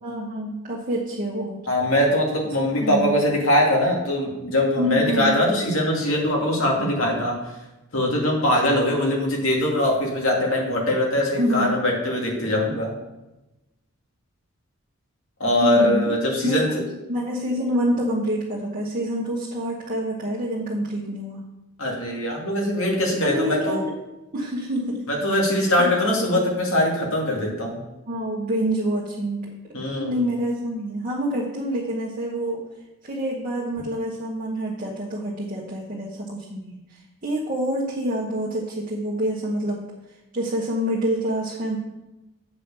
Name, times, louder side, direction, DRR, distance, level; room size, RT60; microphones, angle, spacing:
voice 1, 0.0-1.6 2.8-3.2 4.8-5.4 11.4-11.7 15.6-16.1 16.4-21.4 23.2-23.9 24.3-25.0 25.5-25.9 26.2-26.5 28.1-29.5 29.9-32.7 33.0-39.8 40.3-41.8, equal, 35° right, -4 dB, 1.2 m, -27 dB
voice 2, 1.7-7.4 7.9-12.9 15.4-16.7 21.8-23.8 25.1-27.8 29.7-30.2, left 1 dB, 65° left, -1 dB, 2.3 m, -22 dB
8.2 x 5.3 x 6.8 m, 0.99 s
head